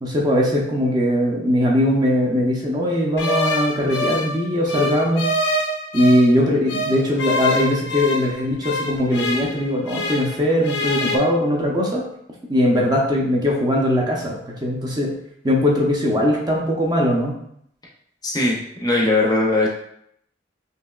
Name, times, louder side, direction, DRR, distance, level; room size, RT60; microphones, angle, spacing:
voice 1, 0.0-5.3 5.9-12.0 12.5-15.1 15.4-17.4, equal, 20° right, -2 dB, 0.7 m, -20 dB
sound 1, 3.2-6.3 6.7-10.4 10.6-11.2, left 1 dB, 70° left, 0.7 m, -25 dB
voice 2, 18.2-19.7, left 2 dB, 20° left, -2 dB, 0.6 m, -19 dB
5.4 x 2.8 x 2.3 m, 0.71 s
head